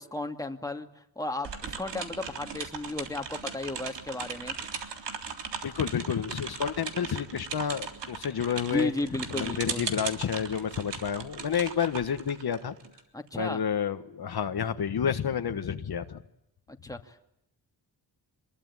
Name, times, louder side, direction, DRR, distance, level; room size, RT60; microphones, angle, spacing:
voice 1, 0.0-4.5 8.7-9.9 13.1-13.6 16.7-17.2, left 2 dB, 10° left, 5 dB, 2.3 m, -34 dB
sound 1, 1.4-13.0, right 6 dB, 80° right, 3.6 m, -38 dB
voice 2, 5.6-8.9 9.3-12.7 13.4-16.2, left 8 dB, 60° left, 8 dB, 1.6 m, -30 dB
26.5 x 22.0 x 9.8 m, 0.80 s
cardioid pair, 95°, 42 cm